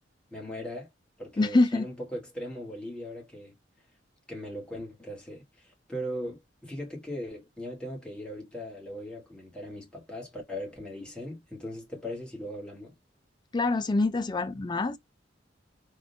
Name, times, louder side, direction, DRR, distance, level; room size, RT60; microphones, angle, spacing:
voice 1, 0.3-0.9 1.2-3.5 4.3-12.9, equal, 5° left, 1.4 m, -39 dB
voice 2, 1.4-1.9 13.5-15.0, left 2 dB, 20° left, 0.3 m, -25 dB
3.6 x 2.5 x 2.6 m
head